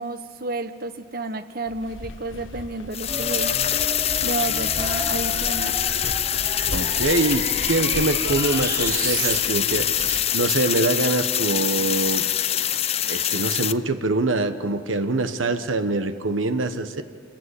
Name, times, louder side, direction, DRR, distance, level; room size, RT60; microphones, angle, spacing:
voice 1, 0.0-3.6 4.2-5.8, right 3 dB, 50° right, 10 dB, 1.1 m, -31 dB
sound 1, 1.7-10.2, left 1 dB, 80° left, 1.2 m, -38 dB
sound 2, 2.9-13.7, left 11 dB, 30° left, 0.5 m, -24 dB
sound 3, 3.1-9.4, right 2 dB, 20° right, 3.1 m, -32 dB
voice 2, 6.7-12.2 13.1-17.0, right 2 dB, 85° right, 9 dB, 1.2 m, -24 dB
27.5 x 15.0 x 9.8 m, 2.4 s
head